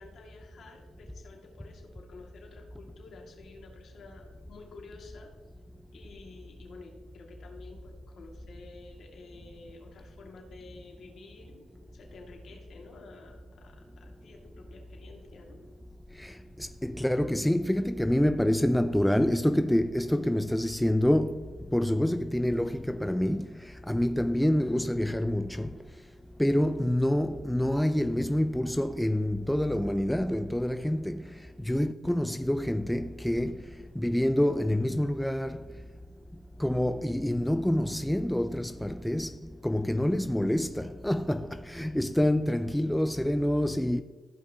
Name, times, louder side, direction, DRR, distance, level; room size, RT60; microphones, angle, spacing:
voice 1, 0.0-5.3 5.9-15.6, left 3 dB, 60° left, 2.3 m, -51 dB
voice 2, 16.8-21.4 21.7-23.5 23.9-25.7 26.4-31.2 31.7-33.6 34.0-35.6 36.6-39.3 39.6-44.0, left 1 dB, 5° left, 0.3 m, -27 dB
15.0 x 5.4 x 3.0 m
cardioid pair, 90°, 0 cm